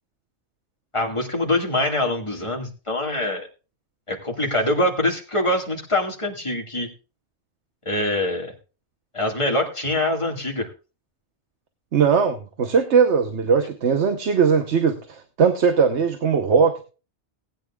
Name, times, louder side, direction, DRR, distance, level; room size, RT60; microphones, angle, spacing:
voice 1, 0.9-3.5 4.1-6.9 7.9-8.5 9.1-10.7, left 1 dB, 25° left, 2 dB, 2.1 m, -24 dB
voice 2, 11.9-16.8, right 6 dB, 90° right, 8 dB, 1.3 m, -19 dB
18.5 x 9.2 x 2.4 m, 0.33 s
omnidirectional pair, 1.1 m